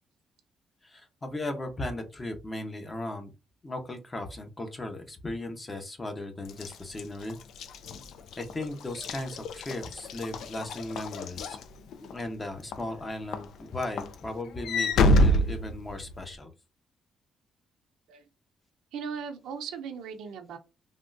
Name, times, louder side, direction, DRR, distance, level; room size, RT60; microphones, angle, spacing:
voice 1, 0.8-3.3 3.6-7.4 8.4-11.6 12.1-16.5, left 1 dB, 25° left, 5 dB, 0.8 m, -36 dB
Walk footsteps / Slam, 6.5-12.2 12.7-13.0 13.3-16.3, left 1 dB, 75° left, 0.3 m, -28 dB
voice 2, 18.9-20.6, right 6 dB, 85° right, 6 dB, 0.6 m, -38 dB
3.5 x 2.2 x 2.5 m, 0.28 s
cardioid pair, 90°, 0 cm